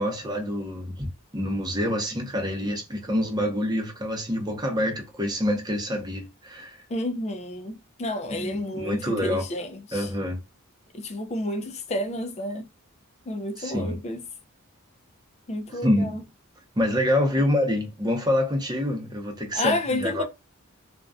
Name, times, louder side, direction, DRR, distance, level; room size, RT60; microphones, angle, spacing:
voice 1, 0.0-6.7 8.4-9.5 9.9-10.4 13.6-14.0 15.7-16.2 16.8-20.2, left 1 dB, 20° right, 0.7 m, -26 dB
voice 2, 6.9-10.1 10.9-12.7 13.3-14.2 15.5-16.2 19.5-20.2, left 1 dB, 30° left, 0.4 m, -30 dB
2.5 x 2.2 x 2.2 m
head